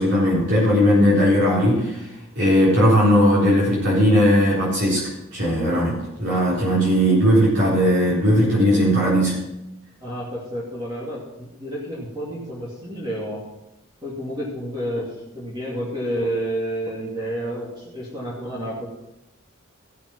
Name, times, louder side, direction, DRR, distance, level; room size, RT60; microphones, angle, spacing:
voice 1, 0.0-2.1 2.4-5.0 5.3-9.4, equal, 55° right, -8 dB, 3.9 m, -18 dB
voice 2, 10.0-13.4 14.0-18.9, equal, 20° right, -6 dB, 2.6 m, -30 dB
15.5 x 6.7 x 6.2 m, 0.93 s
head